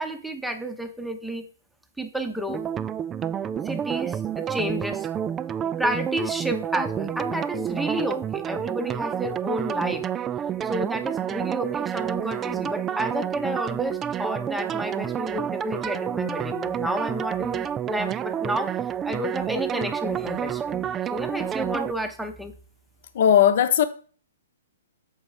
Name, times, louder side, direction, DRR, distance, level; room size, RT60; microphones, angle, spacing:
voice 1, 0.0-1.4 2.0-2.6 3.6-5.1 5.8-10.1 10.6-18.7 19.0-22.5, right 1 dB, ahead, 0.8 m, -30 dB
sound 1, 2.5-21.9, right 9 dB, 20° right, 0.3 m, -29 dB
voice 2, 23.1-23.8, left 9 dB, 60° left, 0.9 m, -17 dB
7.0 x 4.9 x 4.9 m
hypercardioid pair, 135°, 0 cm